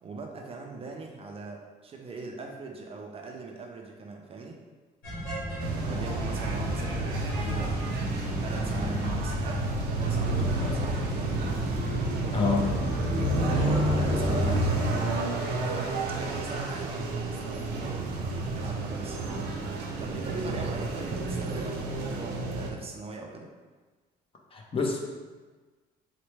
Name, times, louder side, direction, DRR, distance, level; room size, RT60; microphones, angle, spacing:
voice 1, 0.0-4.6 5.8-9.6 9.9-11.1 13.2-15.2 15.6-19.4 20.0-23.5, right 3 dB, 35° right, 2 dB, 0.4 m, -41 dB
sound 1, 5.0-14.9, equal, 60° left, 1.4 m, -29 dB
sound 2, 5.6-22.7, right 3 dB, 80° right, 0.6 m, -33 dB
voice 2, 12.3-12.8 24.5-25.0, left 4 dB, 30° left, 0 dB, 0.6 m, -27 dB
4.1 x 2.1 x 3.1 m, 1.3 s
cardioid pair, 110°, 17 cm